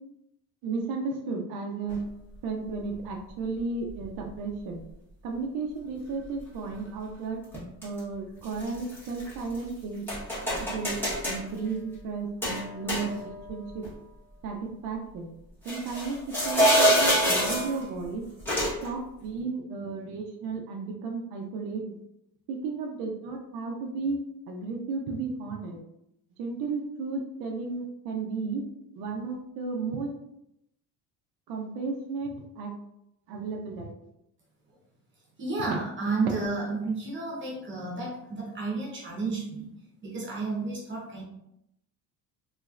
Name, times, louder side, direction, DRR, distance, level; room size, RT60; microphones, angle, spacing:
voice 1, 0.6-2.0 2.4-4.8 5.2-7.4 7.8-10.5 10.7-11.0 11.3-13.9 14.4-15.3 15.7-16.2 16.4-18.2 18.8-22.0 22.5-24.2 24.5-25.8 26.4-28.6 29.0-30.1 31.5-32.7 33.3-33.9, right 4 dB, 70° right, 1 dB, 0.6 m, -34 dB
sound 1, 1.9-2.0 3.0-3.1 4.0-4.3 7.5-8.0 8.4-9.6 10.1-11.4 12.4-13.5 13.8-13.9 15.7-17.8 18.4-18.9, equal, 5° left, 1.2 m, -26 dB
voice 2, 35.4-39.7 40.0-41.2, right 3 dB, 30° right, -4 dB, 0.9 m, -31 dB
3.2 x 3.0 x 2.4 m, 0.81 s
cardioid pair, 150°, 37 cm